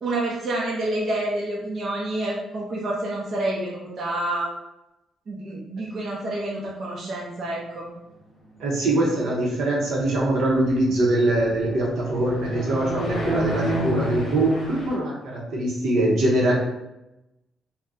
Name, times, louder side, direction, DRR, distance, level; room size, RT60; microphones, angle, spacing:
voice 1, 0.0-4.5 5.3-7.9, right 1 dB, 50° right, -4 dB, 0.7 m, -28 dB
voice 2, 8.6-16.5, right 1 dB, 75° right, -2 dB, 0.9 m, -23 dB
sound 1, 8.7-15.0, equal, 45° left, 0.9 m, -32 dB
3.6 x 2.2 x 2.7 m, 0.91 s
cardioid pair, 90°, 0 cm